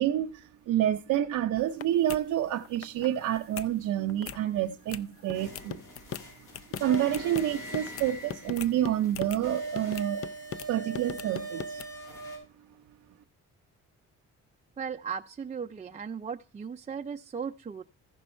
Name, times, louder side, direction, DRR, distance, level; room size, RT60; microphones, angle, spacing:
voice 1, 0.0-5.8 6.8-10.2 10.7-11.8, right 12 dB, 85° right, 0.7 m, -28 dB
sound 1, 1.6-1.8 2.1-2.2 2.6-3.1 3.4-3.7 4.1-4.4 4.9-5.0 5.3-9.4 9.8-10.7 10.9-11.9, left 8 dB, 50° left, 0.5 m, -39 dB
sound 2, 5.3-12.4, right 2 dB, 80° left, 5.0 m, -40 dB
voice 2, 14.8-17.8, right 6 dB, 25° right, 0.4 m, -37 dB
15.0 x 5.4 x 4.3 m
cardioid pair, 90°, 30 cm